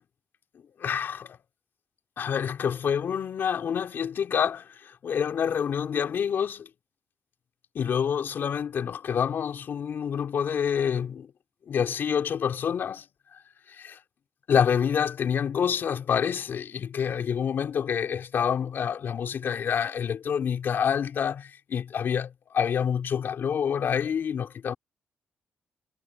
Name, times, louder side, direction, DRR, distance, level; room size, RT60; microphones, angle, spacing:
voice 1, 0.8-1.4 2.2-6.7 7.7-11.3 11.7-13.0 13.7-14.0 14.5-24.7, left 7 dB, 70° left, 4.5 m, -27 dB
cardioid pair, 75°, 4 cm